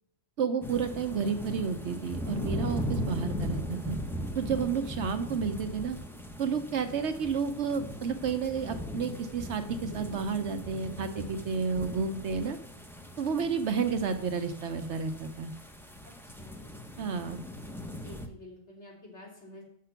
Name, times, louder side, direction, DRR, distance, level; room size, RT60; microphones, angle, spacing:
voice 1, 0.4-4.0 4.3-6.0 6.4-12.6 13.2-15.5 17.0-17.4, right 6 dB, 65° right, 8 dB, 0.9 m, -31 dB
sound 1, 0.6-18.3, equal, 5° left, 0.5 m, -39 dB
voice 2, 16.0-16.7 17.9-19.6, left 1 dB, 55° left, -3 dB, 3.3 m, -50 dB
6.7 x 6.7 x 5.7 m, 0.77 s
omnidirectional pair, 1.4 m